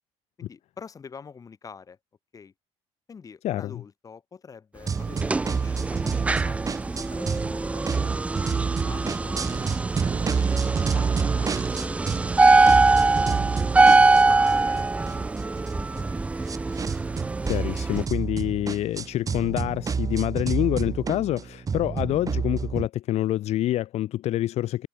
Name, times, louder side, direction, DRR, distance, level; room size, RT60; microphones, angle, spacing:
voice 1, 0.4-2.0 2.3-2.5 3.1-6.6 6.9-8.3 8.8-11.5 11.8-16.2, left 6 dB, 30° left, 7.7 m, -46 dB
sound 1, 4.9-18.0, right 3 dB, 10° right, 0.4 m, -23 dB
sound 2, 4.9-7.5 7.8-12.4 12.7-22.9, right 6 dB, 30° right, 3.8 m, -29 dB
voice 2, 17.4-24.9, left 14 dB, 65° left, 1.6 m, -26 dB
cardioid pair, 130°, 12 cm